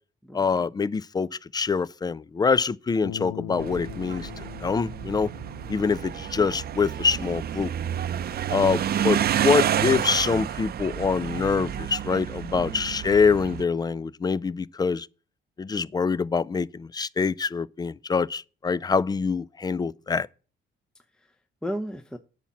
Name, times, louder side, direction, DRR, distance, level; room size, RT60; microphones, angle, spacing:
voice 1, 0.3-4.3 4.6-5.3 5.7-7.7 8.5-15.1 15.6-20.3, left 5 dB, 20° left, 0.4 m, -25 dB
Bass guitar, 3.0-9.3, left 11 dB, 85° left, 0.6 m, -43 dB
sound 1, 3.6-13.6, right 10 dB, 50° right, 0.6 m, -29 dB
voice 2, 12.5-13.0 20.9-22.2, equal, 5° left, 0.8 m, -36 dB
8.9 x 5.8 x 7.2 m
cardioid pair, 90°, 20 cm